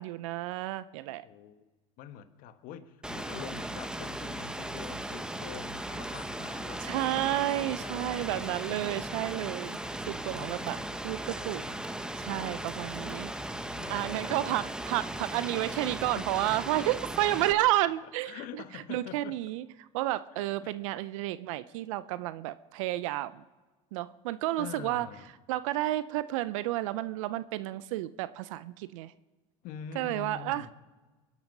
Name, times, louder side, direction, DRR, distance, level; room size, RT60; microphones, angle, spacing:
voice 1, 0.0-1.2 6.8-9.8 10.1-10.8 11.0-11.6 12.2-13.3 13.9-19.6 19.9-23.4 23.9-25.1 25.5-29.1 30.0-30.6, right 15 dB, 75° right, 0.6 m, -31 dB
voice 2, 1.2-1.7 2.0-8.7 10.2-10.9 11.5-11.9 13.7-14.7 16.1-16.3 17.5-17.9 18.2-19.4 20.3-20.7 24.6-25.3 29.6-30.7, left 9 dB, 60° left, 1.3 m, -46 dB
Rain, 3.0-17.5, right 1 dB, 5° right, 0.9 m, -37 dB
23.5 x 11.5 x 5.4 m
supercardioid pair, 95°, 17 cm